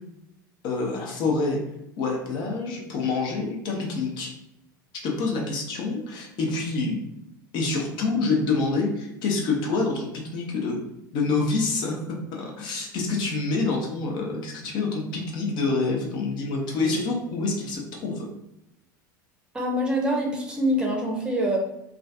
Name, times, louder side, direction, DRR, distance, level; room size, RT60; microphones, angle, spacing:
voice 1, 0.6-1.6 2.0-4.3 5.0-7.0 7.5-10.8 11.1-12.0 12.3-18.3, left 3 dB, 45° left, 0 dB, 0.6 m, -27 dB
voice 2, 19.5-21.6, equal, 10° right, -1 dB, 0.7 m, -25 dB
2.4 x 2.3 x 2.4 m, 0.86 s
figure-of-eight pair, 75°, 11 cm